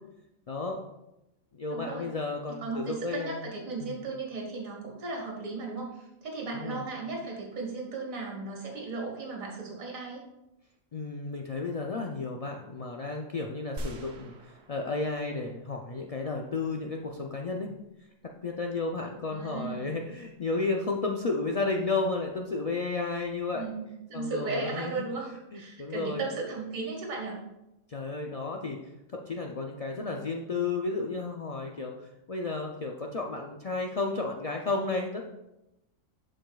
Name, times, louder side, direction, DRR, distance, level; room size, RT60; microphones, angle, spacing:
voice 1, 0.5-0.8 1.5-3.5 3.8-3.9 6.5-6.8 10.9-17.7 18.4-23.7 24.1-25.1 25.5-26.2 27.9-28.8 29.1-35.2, left 3 dB, 70° left, 1 dB, 0.3 m, -32 dB
voice 2, 1.7-2.1 2.5-10.2 19.3-20.0 23.5-27.4, right 3 dB, 85° right, -1 dB, 1.9 m, -36 dB
sound 1, 13.8-16.0, right 1 dB, 60° right, 1.0 m, -42 dB
11.5 x 5.1 x 2.3 m, 0.91 s
omnidirectional pair, 1.4 m